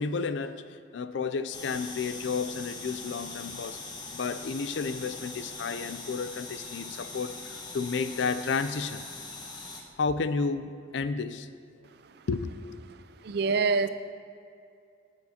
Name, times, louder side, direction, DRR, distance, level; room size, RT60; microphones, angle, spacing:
voice 1, 0.0-3.8 4.1-9.0 10.0-11.5 12.3-12.5, left 4 dB, 75° left, 12 dB, 0.4 m, -32 dB
sound 1, 1.5-9.8, left 3 dB, 25° left, 1.0 m, -41 dB
voice 2, 13.2-13.9, right 4 dB, 60° right, 11 dB, 0.4 m, -25 dB
18.5 x 6.5 x 2.9 m, 2.4 s
head